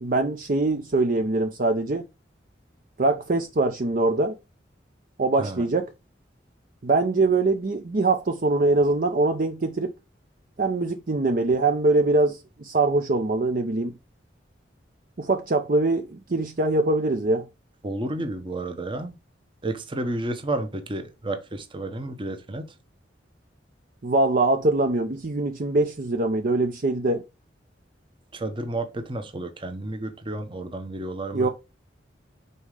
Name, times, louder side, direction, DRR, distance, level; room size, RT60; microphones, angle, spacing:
voice 1, 0.0-2.0 3.0-4.4 5.2-5.9 6.8-9.9 10.6-13.9 15.2-17.5 24.0-27.2 31.3-31.5, right 2 dB, 50° right, 0.6 m, -23 dB
voice 2, 17.8-19.1 19.6-22.7 28.3-31.5, right 2 dB, 25° right, 0.9 m, -31 dB
5.5 x 4.1 x 4.8 m
head